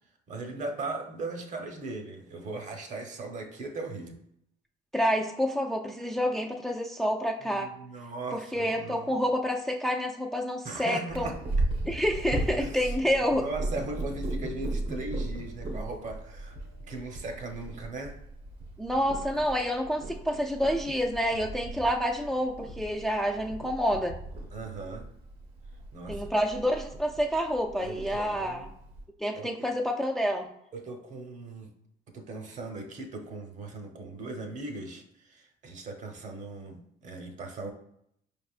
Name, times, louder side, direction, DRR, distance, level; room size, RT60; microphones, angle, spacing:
voice 1, 0.3-4.2 7.4-9.2 10.6-11.3 12.6-12.9 13.3-16.6 16.9-18.2 24.5-25.1 25.9-26.3 27.8-28.7 29.3-29.7 30.7-31.7 32.1-37.7, right 2 dB, 45° right, 4 dB, 0.9 m, -38 dB
voice 2, 4.9-7.7 8.3-11.3 11.9-13.4 18.8-24.2 26.1-28.7 29.2-30.5, equal, ahead, 1 dB, 0.3 m, -28 dB
Purr, 11.1-29.0, right 2 dB, 70° right, 1.2 m, -37 dB
4.9 x 3.4 x 2.4 m, 0.73 s
cardioid pair, 110°, 17 cm